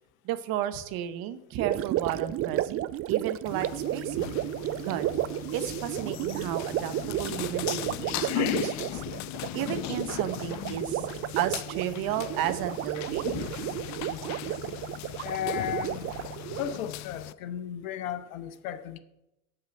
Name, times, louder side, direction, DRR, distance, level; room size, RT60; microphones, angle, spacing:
voice 1, 0.2-4.4 4.8-5.2 5.5-9.0 9.5-11.0 11.4-13.6, right 11 dB, 60° right, 1.0 m, -33 dB
Gurgling, 1.5-16.8, right 14 dB, 35° right, 0.4 m, -32 dB
sound 1, 3.5-17.3, left 16 dB, 45° left, 0.4 m, -37 dB
voice 2, 15.2-16.1 16.5-19.0, left 10 dB, 80° left, 0.7 m, -34 dB
7.8 x 5.9 x 7.5 m
hypercardioid pair, 70°, 40 cm